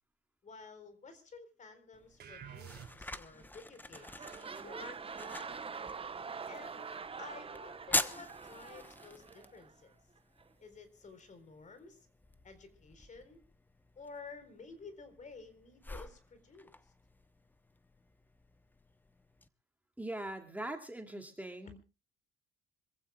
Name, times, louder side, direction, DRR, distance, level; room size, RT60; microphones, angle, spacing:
voice 1, 0.4-5.6 6.5-9.9 10.6-12.1 12.4-13.4 14.0-16.9, left 4 dB, 35° left, 11 dB, 4.1 m, -52 dB
sound 1, 1.9-19.5, left 2 dB, 10° left, 1.0 m, -45 dB
sound 2, 2.2-3.4, right 8 dB, 50° right, 3.4 m, -50 dB
sound 3, 3.4-3.6 3.9-9.7 10.4-10.5, right 5 dB, 25° right, 1.1 m, -45 dB
voice 2, 20.0-21.8, right 1 dB, 5° right, 4 dB, 2.5 m, -41 dB
26.5 x 15.5 x 2.3 m, 0.33 s
cardioid pair, 100°, 21 cm